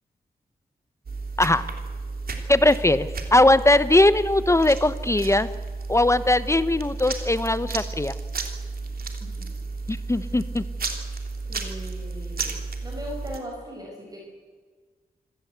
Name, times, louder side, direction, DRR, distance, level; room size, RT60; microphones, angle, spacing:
sound 1, 1.1-13.4, right 3 dB, 65° right, 3.0 m, -33 dB
voice 1, 2.5-5.5 5.9-8.1 9.9-10.6, left 1 dB, 15° left, 14 dB, 0.9 m, -20 dB
voice 2, 11.5-12.6 12.8-14.2, equal, 25° right, -1 dB, 5.8 m, -38 dB
26.5 x 17.5 x 8.1 m, 1.5 s
wide cardioid pair, 100°, 16 cm